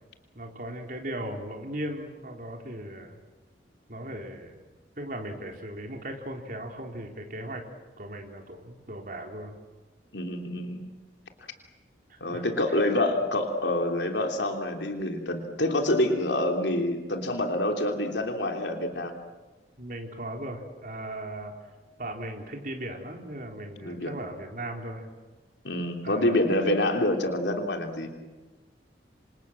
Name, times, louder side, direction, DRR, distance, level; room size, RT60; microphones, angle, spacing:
voice 1, 0.3-3.2 3.9-4.6 5.0-7.6 8.0-9.6 12.3-12.4 19.8-21.5 22.0-25.1 26.0-26.7, right 1 dB, 50° right, 2 dB, 4.1 m, -37 dB
voice 2, 10.1-10.9 12.2-19.1 23.8-24.1 25.6-28.1, left 1 dB, 80° left, 3 dB, 3.3 m, -27 dB
28.5 x 26.5 x 7.6 m, 1.3 s
head